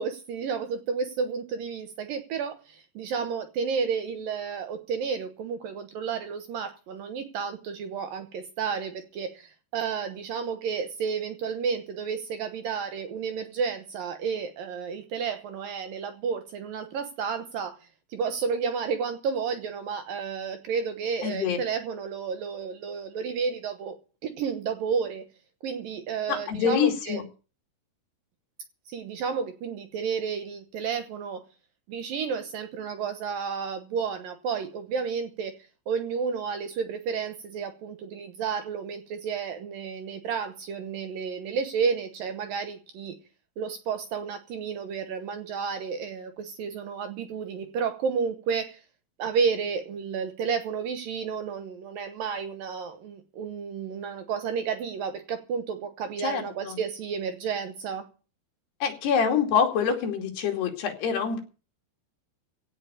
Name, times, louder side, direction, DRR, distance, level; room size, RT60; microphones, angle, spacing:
voice 1, 0.0-25.2 25.6-27.2 28.9-31.4 31.9-35.6 35.9-43.2 43.6-48.8 49.2-58.1, right 6 dB, 70° right, 2.4 m, -31 dB
voice 2, 21.2-21.6 26.3-27.2 56.2-56.8 58.8-61.4, left 7 dB, 70° left, 4.6 m, -26 dB
16.5 x 5.6 x 9.8 m
omnidirectional pair, 5.0 m